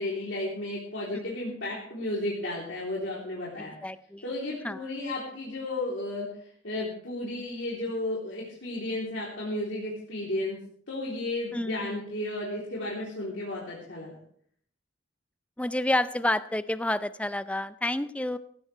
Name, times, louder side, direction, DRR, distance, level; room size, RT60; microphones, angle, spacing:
voice 1, 0.0-3.8 4.2-6.3 6.6-10.6 10.9-14.2, left 1 dB, 70° left, -5 dB, 3.4 m, -33 dB
voice 2, 3.6-4.2 4.6-4.9 11.5-12.0 15.6-18.4, left 1 dB, 5° left, 13 dB, 0.5 m, -30 dB
17.0 x 15.5 x 3.3 m, 0.62 s
head